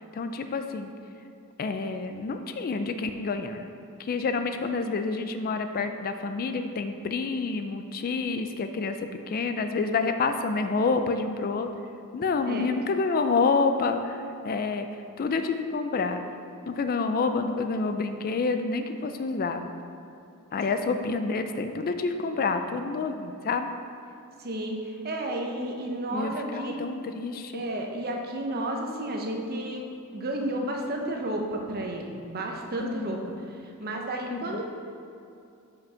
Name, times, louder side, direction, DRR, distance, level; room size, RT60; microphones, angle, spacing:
voice 1, 0.1-0.9 1.6-3.7 4.0-9.0 9.3-11.7 12.1-14.9 15.2-16.2 16.7-19.7 20.5-23.7 26.1-27.6 32.8-33.3 34.3-34.6, left 4 dB, 40° left, 7 dB, 0.4 m, -28 dB
voice 2, 24.4-26.8 27.5-29.8 30.1-33.2 33.8-34.6, right 1 dB, 45° right, 1 dB, 0.8 m, -32 dB
6.0 x 5.1 x 5.6 m, 2.6 s
head